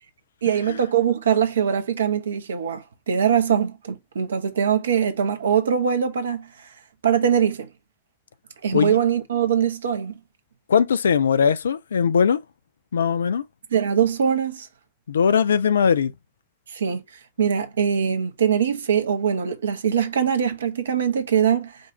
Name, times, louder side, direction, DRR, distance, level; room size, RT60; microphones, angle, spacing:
voice 1, 0.4-6.5 7.0-7.7 8.6-10.2 13.7-14.7 16.7-17.0 17.4-21.8, right 8 dB, 70° right, 0.8 m, -22 dB
voice 2, 10.7-12.4 12.9-13.4 15.1-16.1, left 7 dB, 70° left, 0.4 m, -20 dB
5.2 x 2.4 x 2.8 m
figure-of-eight pair, 90°, 0 cm